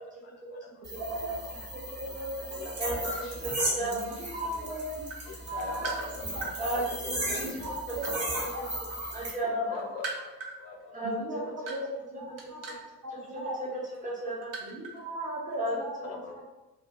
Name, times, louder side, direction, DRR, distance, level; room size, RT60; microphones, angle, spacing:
voice 1, 0.0-1.2 2.1-3.5 4.6-4.7 5.3-6.7 9.5-11.1 11.4-11.5 13.5-13.6 15.7-15.8 16.0-16.4, left 3 dB, 35° left, 2 dB, 0.4 m, -43 dB
sound 1, 0.8-9.3, right 1 dB, 35° right, 1.2 m, -36 dB
voice 2, 1.0-1.4 1.7-2.9 3.8-5.9 6.3-6.4 6.7-6.8 7.4-8.6 11.0-11.4 11.7-12.7 13.0-13.8 14.7-16.0 16.3-16.4, right 1 dB, 80° right, -2 dB, 0.8 m, -38 dB
voice 3, 3.6-4.2 6.6-7.2 9.1-9.8 10.9-11.1 14.0-14.5 15.6-15.8, right 1 dB, 15° right, -5 dB, 0.9 m, -32 dB
sound 2, 5.0-6.6 7.3-8.9 9.2-15.0 15.3-15.5, right 3 dB, 50° right, 0.7 m, -40 dB
2.3 x 2.2 x 2.7 m, 1.0 s
figure-of-eight pair, 55°, 48 cm